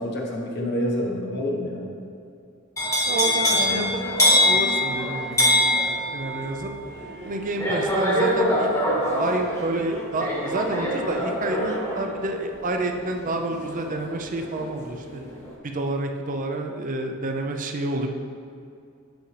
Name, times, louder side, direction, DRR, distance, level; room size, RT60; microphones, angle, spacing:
voice 1, 0.0-1.9 3.5-3.9, left 1 dB, 55° left, -1 dB, 1.1 m, -28 dB
sound 1, 2.8-14.7 15.1-15.5, left 1 dB, 15° left, 1.2 m, -24 dB
voice 2, 3.1-3.8 4.1-5.7 6.1-6.7 7.3-8.7 9.2-15.2 15.6-18.1, right 2 dB, 40° right, 4 dB, 0.5 m, -29 dB
8.2 x 6.3 x 3.3 m, 2.5 s
head